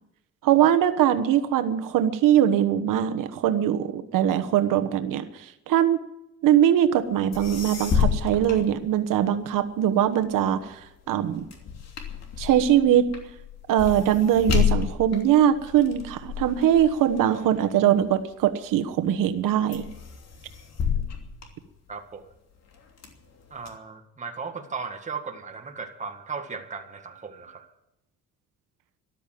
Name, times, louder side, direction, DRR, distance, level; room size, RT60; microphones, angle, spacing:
voice 1, 0.4-6.0 6.4-10.8 11.1-11.5 12.4-13.1 13.7-19.8, right 10 dB, 85° right, 9 dB, 1.2 m, -22 dB
sound 1, 7.0-7.1 7.3-9.4 9.9-18.5 19.0-19.4 19.7-22.2 22.7-23.7, left 8 dB, 55° left, 3.0 m, -30 dB
voice 2, 20.9-21.3 21.9-22.3 23.5-27.7, right 5 dB, 25° right, 4 dB, 1.7 m, -37 dB
13.5 x 12.5 x 7.6 m, 0.88 s
cardioid pair, 150°, 31 cm